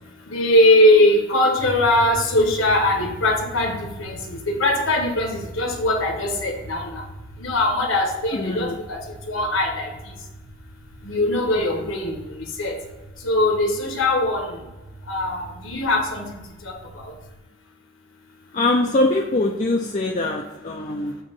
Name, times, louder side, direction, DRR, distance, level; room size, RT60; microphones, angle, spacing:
voice 1, 0.3-7.0 7.4-9.0 9.3-9.9 11.0-12.2 12.6-12.8 13.2-14.6 15.1-16.4 16.6-16.7 17.0-17.1, left 1 dB, 75° left, 1 dB, 1.4 m, -21 dB
sound 1, 1.6-17.4, right 1 dB, 70° right, 1.5 m, -41 dB
voice 2, 8.4-8.8 11.6-11.9 18.5-21.2, left 2 dB, 35° left, 0 dB, 0.5 m, -23 dB
7.9 x 3.0 x 5.4 m, 1.1 s
head